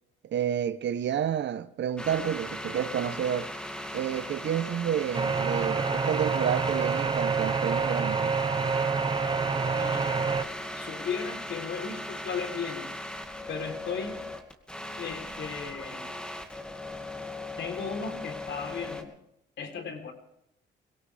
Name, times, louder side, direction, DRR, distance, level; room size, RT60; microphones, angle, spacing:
voice 1, 0.2-3.5 3.9-8.3, right 9 dB, 65° right, 1.0 m, -30 dB
sound 1, 2.0-19.0, left 1 dB, 5° left, 2.2 m, -38 dB
sound 2, 5.1-10.4, right 5 dB, 25° right, 0.8 m, -27 dB
voice 2, 9.8-10.2 10.8-12.9 13.5-14.3 15.0-16.1 17.6-19.1 19.6-20.1, left 6 dB, 65° left, 3.9 m, -36 dB
23.5 x 17.5 x 3.5 m
cardioid pair, 90°, 20 cm